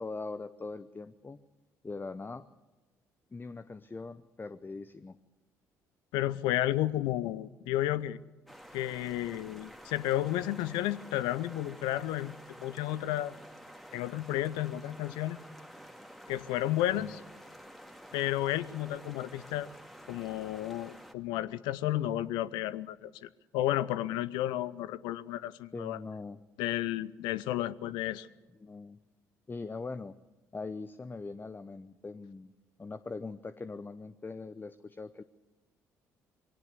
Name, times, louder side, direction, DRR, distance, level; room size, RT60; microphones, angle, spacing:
voice 1, 0.0-1.4 1.8-2.5 3.3-5.2 17.0-17.1 25.7-26.4 28.6-29.0 29.5-30.1 30.5-32.5 32.8-35.2, left 3 dB, 25° left, 12 dB, 0.8 m, -41 dB
voice 2, 6.1-8.2 8.7-12.3 12.6-13.4 13.9-15.4 16.3-17.2 18.1-19.7 20.1-26.0 26.6-28.3, left 14 dB, 70° left, 17 dB, 0.7 m, -32 dB
sound 1, 8.5-21.1, equal, ahead, 2.1 m, -50 dB
22.0 x 17.5 x 8.1 m, 1.2 s
figure-of-eight pair, 50°, 8 cm